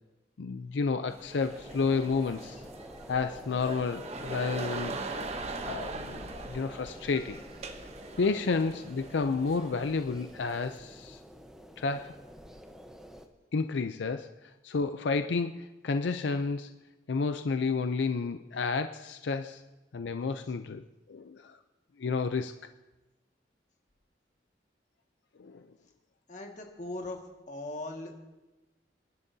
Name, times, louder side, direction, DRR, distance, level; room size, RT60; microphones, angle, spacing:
voice 1, 0.4-2.6 3.1-5.0 5.7-7.4 8.2-11.2 11.8-12.2 13.5-14.3 14.6-16.7 17.1-19.6 19.9-20.8 21.1-21.6 22.0-22.5 25.4-25.6, left 4 dB, 85° left, 9 dB, 0.5 m, -31 dB
sound 1, 1.1-10.8, right 3 dB, 40° right, 0.9 m, -42 dB
sound 2, 1.4-13.3, equal, 5° right, 0.9 m, -48 dB
voice 2, 26.3-27.2 27.5-28.1, left 2 dB, 45° left, 1 dB, 1.8 m, -39 dB
27.5 x 11.0 x 2.7 m, 1.1 s
head